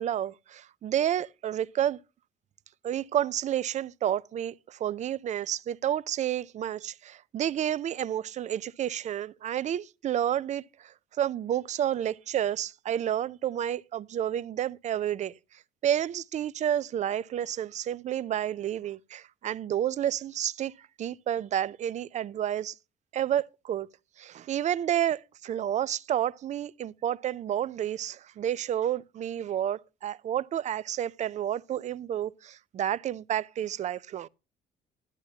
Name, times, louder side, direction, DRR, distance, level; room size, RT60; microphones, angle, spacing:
voice 1, 0.0-2.0 2.8-22.7 23.1-23.9 24.2-34.3, right 10 dB, 45° right, 0.5 m, -30 dB
12.0 x 10.5 x 2.8 m
cardioid pair, 110°, 17 cm